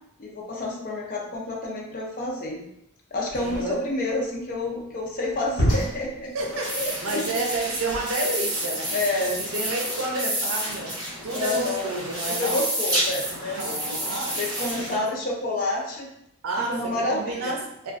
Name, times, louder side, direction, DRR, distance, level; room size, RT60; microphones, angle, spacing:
voice 1, 0.2-2.6 3.1-6.3 6.7-7.4 8.9-9.4 11.3-11.9 12.3-14.0 14.3-16.1 16.7-17.6, left 2 dB, 40° left, -2 dB, 0.5 m, -29 dB
sound 1, 3.3-8.4, equal, 65° left, 1.1 m, -31 dB
voice 2, 3.4-3.8 6.3-6.8 7.0-10.9 11.2-12.6 13.3-15.1 16.4-17.9, right 2 dB, 75° right, 0 dB, 0.5 m, -30 dB
sound 2, 6.4-14.9, equal, 20° right, 0.9 m, -30 dB
2.2 x 2.2 x 2.5 m, 0.80 s
head